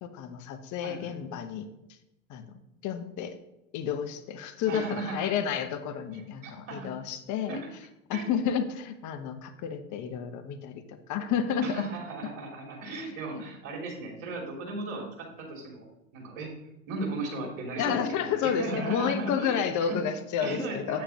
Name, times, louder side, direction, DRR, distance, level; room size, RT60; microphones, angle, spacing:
voice 1, 0.0-1.7 2.3-2.5 2.8-3.4 3.7-7.6 8.1-10.8 11.1-11.8 13.3-13.4 17.8-21.0, left 7 dB, 45° left, 8 dB, 1.0 m, -30 dB
voice 2, 0.8-1.2 4.7-5.3 6.1-6.9 7.5-7.6 8.1-8.3 11.6-15.9 16.1-16.5 16.9-20.0 20.4-21.0, right 2 dB, 65° right, 0 dB, 2.9 m, -36 dB
8.6 x 7.5 x 2.9 m, 0.91 s
hypercardioid pair, 80°, 40 cm